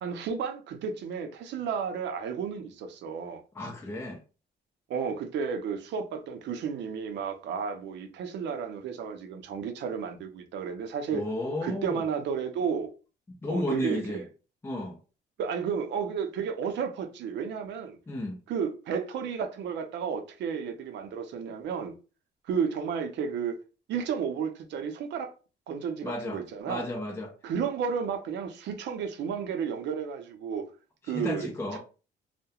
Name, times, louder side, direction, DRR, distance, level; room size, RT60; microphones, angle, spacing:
voice 1, 0.0-3.4 4.9-11.2 11.6-12.9 13.5-14.2 15.4-18.0 18.5-21.9 22.4-23.6 23.9-25.4 25.7-26.9 27.4-30.7 31.1-31.8, right 6 dB, 70° right, 0.5 m, -32 dB
voice 2, 3.5-4.2 11.1-12.0 13.3-14.2 14.6-15.0 18.1-18.4 26.0-26.4 26.7-27.3 31.1-31.8, left 1 dB, 15° left, 0.5 m, -33 dB
2.3 x 2.1 x 2.8 m
cardioid pair, 135°, 19 cm